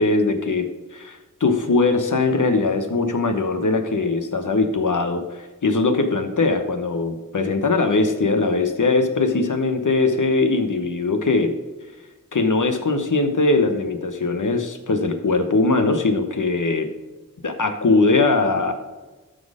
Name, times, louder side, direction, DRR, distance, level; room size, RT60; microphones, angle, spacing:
voice 1, 0.0-11.6 12.3-16.9 17.4-18.7, left 3 dB, 65° left, 7 dB, 1.1 m, -21 dB
12.5 x 4.2 x 5.0 m, 1.2 s
wide cardioid pair, 55°, 33 cm